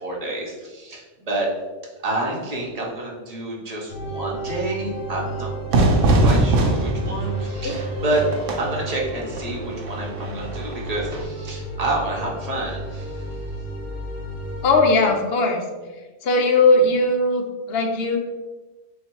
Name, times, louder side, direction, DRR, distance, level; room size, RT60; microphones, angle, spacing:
voice 1, 0.0-1.5 2.0-5.8 6.2-8.2 8.6-13.2, right 2 dB, 35° right, -3 dB, 0.8 m, -29 dB
sound 1, 3.9-14.8, right 2 dB, 80° left, 1.2 m, -32 dB
Fire / Fireworks, 5.7-11.2, right 2 dB, 90° right, 1.0 m, -22 dB
voice 2, 14.6-15.6 16.2-18.2, left 2 dB, 60° left, 3 dB, 0.8 m, -19 dB
3.7 x 2.3 x 4.5 m, 1.2 s
omnidirectional pair, 1.3 m